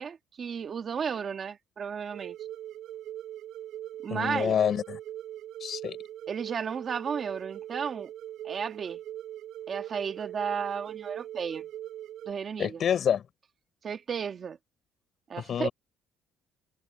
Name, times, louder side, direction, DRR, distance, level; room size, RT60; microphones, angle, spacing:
voice 1, 0.0-2.4 4.0-4.6 6.3-8.1 8.4-9.0 9.7-11.7 12.3-12.8 13.8-14.6 15.3-15.7, right 6 dB, 30° right, 1.7 m, -33 dB
sound 1, 2.1-12.3, right 12 dB, 60° right, 3.3 m, -41 dB
voice 2, 4.1-5.0 5.6-6.0 12.6-13.2 15.5-15.7, left 8 dB, 40° left, 5.0 m, -27 dB
cardioid pair, 175°, 0 cm